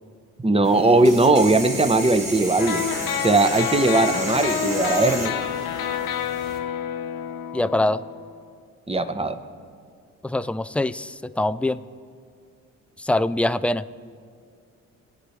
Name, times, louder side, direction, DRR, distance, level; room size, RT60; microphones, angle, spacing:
voice 1, 0.4-2.9 3.2-5.3 8.9-9.4, right 2 dB, 15° right, 9 dB, 1.0 m, -19 dB
sound 1, 0.6-6.6, right 2 dB, 75° right, 2.9 m, -33 dB
sound 2, 2.6-8.3, left 9 dB, 75° left, 0.7 m, -28 dB
voice 2, 7.5-8.0 10.2-11.8 13.0-13.9, left 1 dB, 5° left, 15 dB, 0.3 m, -23 dB
25.0 x 8.9 x 3.3 m, 2.2 s
hypercardioid pair, 55°, 35 cm